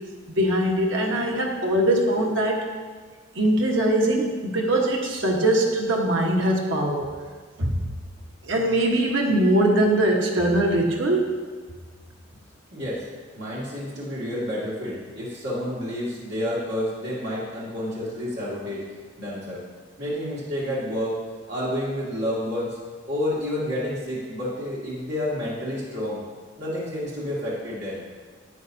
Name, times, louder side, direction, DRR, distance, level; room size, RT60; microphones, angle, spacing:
voice 1, 0.3-2.6 3.3-7.1 7.6-7.8 8.4-11.4, right 1 dB, 75° right, -1 dB, 1.3 m, -22 dB
voice 2, 12.7-13.1 13.3-18.8 19.2-19.6 20.0-21.2 21.5-22.8 23.1-26.2 26.6-28.0, left 1 dB, 55° right, -8 dB, 2.2 m, -29 dB
10.0 x 8.5 x 2.7 m, 1.5 s
head